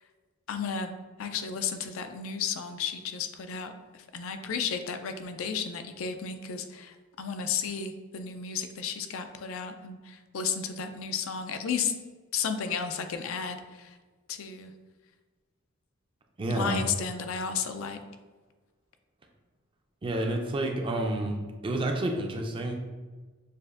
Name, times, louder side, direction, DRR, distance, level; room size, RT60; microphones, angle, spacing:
voice 1, 0.5-11.9 12.3-14.0 14.3-14.7 16.5-18.0, left 6 dB, 70° left, 7 dB, 0.4 m, -33 dB
voice 2, 16.4-16.9 20.0-22.8, right 1 dB, 25° right, 2 dB, 0.4 m, -29 dB
6.5 x 2.5 x 2.4 m, 1.3 s
head